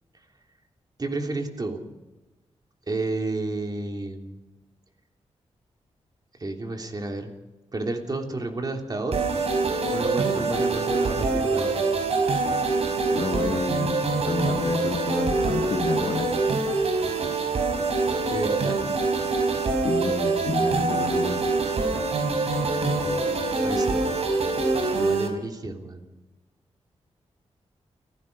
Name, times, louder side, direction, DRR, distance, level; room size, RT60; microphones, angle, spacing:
voice 1, 1.0-1.8 2.9-4.4 6.4-7.3 7.7-9.2 9.9-11.8 18.3-18.8 23.0-24.0 24.9-26.0, right 2 dB, 35° right, 3 dB, 3.3 m, -31 dB
sound 1, 9.1-25.3, right 3 dB, 65° right, 5.1 m, -25 dB
voice 2, 13.1-16.3 19.8-21.4, left 3 dB, 60° left, 5 dB, 2.2 m, -29 dB
29.5 x 16.0 x 5.4 m, 1.1 s
wide cardioid pair, 95°, 11 cm